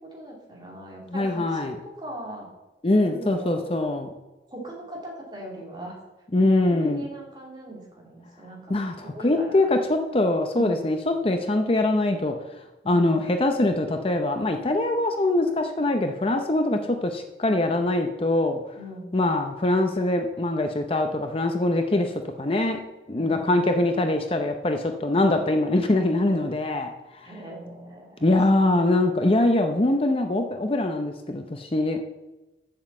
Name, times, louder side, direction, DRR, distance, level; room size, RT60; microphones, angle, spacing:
voice 1, 0.0-2.5 3.0-3.6 4.5-6.0 6.7-8.8 9.0-9.8 10.6-10.9 16.7-16.9 18.8-19.1 23.1-23.7 27.2-28.4 29.3-29.5, right 1 dB, 25° right, -2 dB, 2.7 m, -40 dB
voice 2, 1.1-1.8 2.8-4.1 6.3-7.0 8.7-18.6 19.1-22.8 23.1-27.3 28.2-32.0, left 2 dB, 30° left, 5 dB, 0.6 m, -23 dB
7.4 x 7.2 x 7.3 m, 1.1 s
head